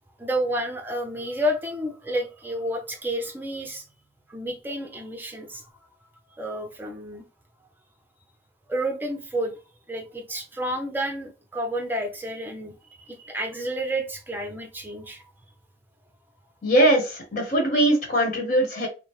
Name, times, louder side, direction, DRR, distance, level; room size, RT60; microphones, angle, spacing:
voice 1, 0.2-3.8 4.3-5.6 6.4-7.2 8.7-9.5 9.9-15.3, equal, 10° right, 0.7 m, -30 dB
voice 2, 16.6-18.9, right 1 dB, 40° left, 1.3 m, -21 dB
5.0 x 2.1 x 3.1 m
head